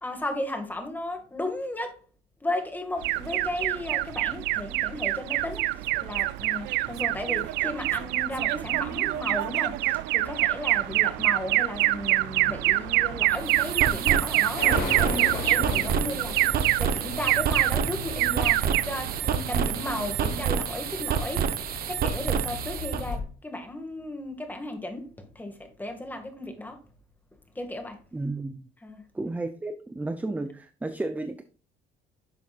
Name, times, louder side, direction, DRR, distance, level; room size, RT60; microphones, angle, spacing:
voice 1, 0.0-2.0 2.4-26.8 27.6-28.0 28.8-29.0, left 1 dB, 10° left, 2.0 m, -35 dB
Alarm, 3.0-20.6, right 17 dB, 90° right, 0.5 m, -26 dB
sound 1, 13.3-23.1, right 8 dB, 60° right, 1.0 m, -29 dB
sound 2, 14.6-23.2, left 4 dB, 85° left, 4.0 m, -37 dB
voice 2, 28.1-28.7 29.1-31.4, right 2 dB, 10° right, 0.6 m, -32 dB
10.5 x 7.0 x 2.5 m
cardioid pair, 110°, 17 cm